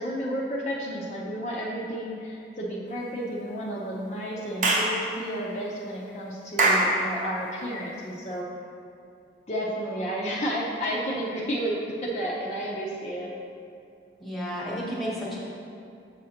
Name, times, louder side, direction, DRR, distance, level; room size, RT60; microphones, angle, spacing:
voice 1, 0.0-8.5 9.5-11.7 12.0-13.3, equal, 35° left, -5 dB, 0.6 m, -31 dB
Clapping / Chirp tweet, 4.6-4.9 6.6-6.9, right 2 dB, 40° right, 0.8 m, -21 dB
voice 2, 14.2-15.4, equal, ahead, -6 dB, 1.1 m, -32 dB
6.6 x 6.3 x 2.8 m, 2.5 s
head